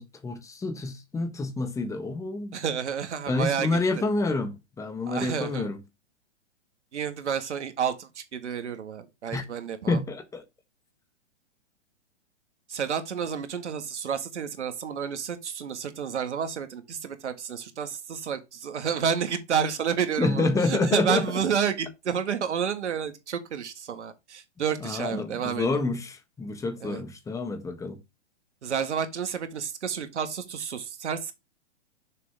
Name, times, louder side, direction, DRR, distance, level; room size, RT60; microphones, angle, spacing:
voice 1, 0.0-2.5 3.3-5.8 9.3-9.4 9.9-10.4 20.2-21.2 24.8-28.0, left 3 dB, 10° left, 1.3 m, -28 dB
voice 2, 2.5-3.8 5.1-5.7 6.9-10.0 12.7-25.8 26.8-27.0 28.6-31.3, right 7 dB, 75° right, 1.7 m, -30 dB
6.8 x 6.5 x 3.4 m
hypercardioid pair, 130°, 35 cm